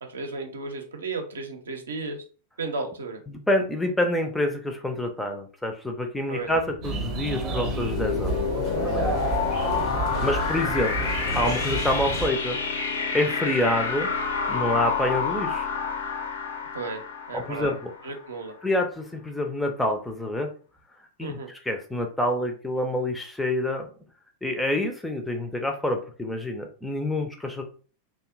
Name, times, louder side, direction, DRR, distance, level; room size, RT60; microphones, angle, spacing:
voice 1, 0.0-2.2 2.6-3.2 6.3-6.5 10.1-10.4 16.7-17.0 17.3-17.8 18.0-18.5 21.2-21.5, right 3 dB, 70° right, 4 dB, 0.6 m, -34 dB
voice 2, 3.3-8.4 8.8-9.2 10.2-12.6 13.1-14.1 14.5-15.7 17.3-17.9 18.6-20.5 21.2-23.9 24.4-27.6, left 1 dB, 5° left, 4 dB, 0.4 m, -27 dB
sound 1, 6.5-18.2, left 5 dB, 65° left, 0.5 m, -29 dB
sound 2, 6.8-12.3, right 2 dB, 30° right, 0.7 m, -31 dB
2.6 x 2.2 x 2.4 m, 0.39 s
figure-of-eight pair, 90°, 0 cm